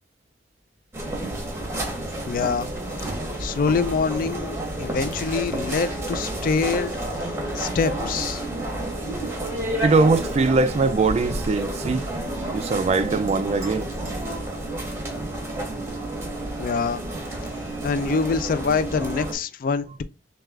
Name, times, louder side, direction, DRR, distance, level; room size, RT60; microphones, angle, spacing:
sound 1, 0.9-19.3, right 1 dB, 15° right, 1.0 m, -30 dB
voice 1, 2.3-2.7 3.4-6.9 7.5-8.4 16.6-17.0 17.8-20.0, left 5 dB, 50° left, 0.3 m, -25 dB
voice 2, 9.8-12.0 12.5-13.9, right 3 dB, 35° right, 0.3 m, -21 dB
6.1 x 2.3 x 2.4 m
head